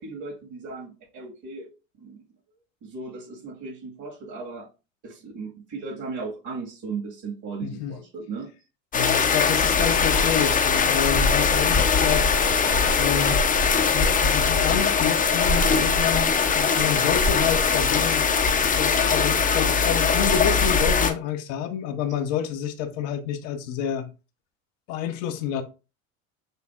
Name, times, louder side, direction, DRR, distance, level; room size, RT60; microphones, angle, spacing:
voice 1, 0.0-1.7 2.0-2.2 2.8-4.7 5.0-8.5, right 4 dB, 45° right, 1.8 m, -36 dB
voice 2, 7.6-8.0 8.9-12.3 13.0-13.4 13.9-18.3 18.8-24.1 24.9-25.6, left 9 dB, 65° left, 0.8 m, -28 dB
sound 1, 8.9-21.1, left 5 dB, 20° left, 0.6 m, -21 dB
6.3 x 2.5 x 2.4 m
hypercardioid pair, 90°, 40 cm